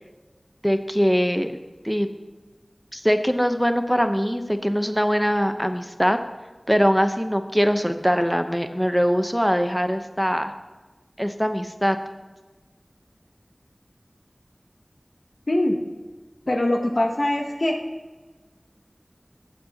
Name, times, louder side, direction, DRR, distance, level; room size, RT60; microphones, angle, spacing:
voice 1, 0.6-1.5 1.8-2.1 2.9-6.2 6.7-10.5 11.2-12.0, equal, ahead, 7 dB, 0.9 m, -22 dB
voice 2, 15.5-15.8 16.5-17.8, left 1 dB, 65° left, 2 dB, 0.9 m, -22 dB
15.0 x 8.4 x 2.9 m, 1.3 s
wide cardioid pair, 45°, 0 cm